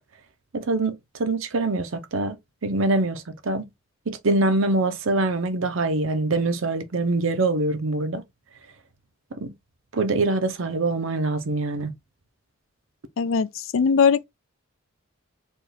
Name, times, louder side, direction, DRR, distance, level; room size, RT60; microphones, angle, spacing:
voice 1, 0.5-2.4 2.6-3.7 4.1-8.2 9.3-9.5 9.9-11.9, right 2 dB, 65° right, 0.7 m, -24 dB
voice 2, 13.2-14.3, left 6 dB, 65° left, 0.4 m, -20 dB
4.3 x 2.4 x 3.3 m
head